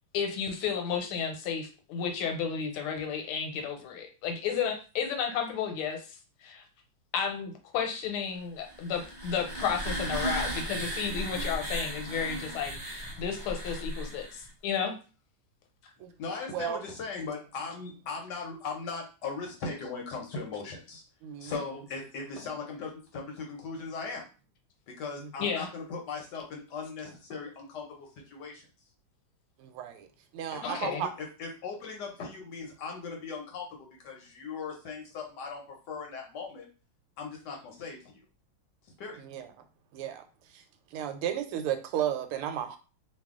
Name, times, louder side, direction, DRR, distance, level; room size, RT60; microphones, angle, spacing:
voice 1, 0.1-6.6 7.1-14.9 25.4-25.7 30.6-31.0, left 7 dB, 80° left, 4 dB, 1.6 m, -32 dB
sound 1, 8.6-14.5, right 1 dB, 35° right, 0.6 m, -36 dB
voice 2, 16.2-21.0 21.4-24.2 24.9-28.7 30.5-36.7 37.2-38.2 38.9-39.2, left 4 dB, 65° left, 1 dB, 1.1 m, -39 dB
voice 3, 29.6-30.1 30.3-31.1 39.2-39.5 39.9-40.2 40.5-40.6 40.9-42.8, right 10 dB, 85° right, 7 dB, 1.5 m, -33 dB
3.3 x 2.4 x 3.5 m, 0.34 s
omnidirectional pair, 2.4 m